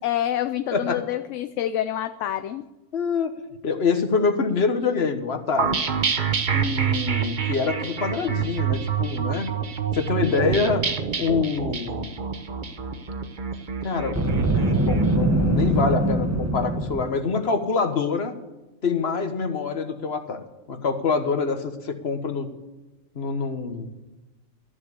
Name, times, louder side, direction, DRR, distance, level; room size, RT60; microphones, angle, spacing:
voice 1, 0.0-2.6 15.9-16.0, left 12 dB, 75° left, 9 dB, 0.9 m, -27 dB
voice 2, 2.9-3.3 3.6-5.8 6.5-9.5 9.9-10.8 11.2-12.1 13.8-14.3 14.5-18.3 18.8-22.5 23.1-23.9, left 5 dB, 55° left, 7 dB, 1.5 m, -25 dB
sound 1, 5.6-15.0, right 7 dB, 40° right, 1.0 m, -27 dB
Boom, 14.1-17.2, right 2 dB, 15° right, 1.1 m, -22 dB
13.5 x 7.5 x 8.2 m, 1.1 s
omnidirectional pair, 1.3 m